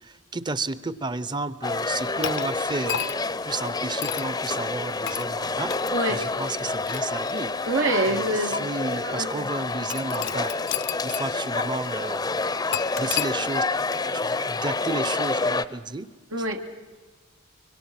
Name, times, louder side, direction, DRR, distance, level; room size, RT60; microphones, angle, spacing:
voice 1, 0.0-3.0 3.4-5.7 6.1-7.5 8.1-10.5 11.0-12.3 13.0-13.7 14.1-16.1, right 2 dB, 20° right, 16 dB, 0.7 m, -32 dB
sound 1, 1.6-15.7, left 3 dB, 20° left, 0.6 m, -28 dB
sound 2, 2.2-3.4 4.0-4.3 5.1-5.3 5.7-5.9 6.6-7.8 8.5-8.6 9.9-11.3 11.6-11.7 12.7-13.3, left 9 dB, 60° left, 0.6 m, -32 dB
voice 2, 5.9-6.2 7.7-8.6 9.0-9.5 16.3-16.6, right 1 dB, 85° right, 3 dB, 1.9 m, -26 dB
25.0 x 24.0 x 6.0 m, 1.3 s
head